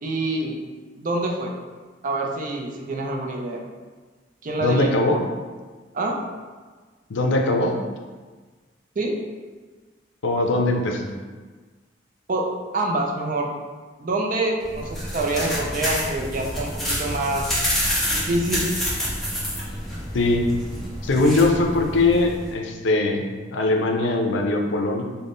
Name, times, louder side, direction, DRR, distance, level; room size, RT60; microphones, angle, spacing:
voice 1, 0.0-0.6 0.9-1.5 2.0-3.6 4.4-4.9 5.9-6.2 9.0-9.2 12.3-12.5 12.7-13.5 14.0-17.5 18.1-18.7, right 2 dB, 45° right, 0 dB, 0.5 m, -26 dB
voice 2, 4.6-5.2 7.1-7.8 10.2-11.1 20.1-20.5 21.0-23.2 23.5-25.0, left 2 dB, 85° left, 2 dB, 0.5 m, -21 dB
sound 1, 14.6-22.5, equal, ahead, 0.9 m, -28 dB
3.5 x 2.1 x 3.8 m, 1.4 s
head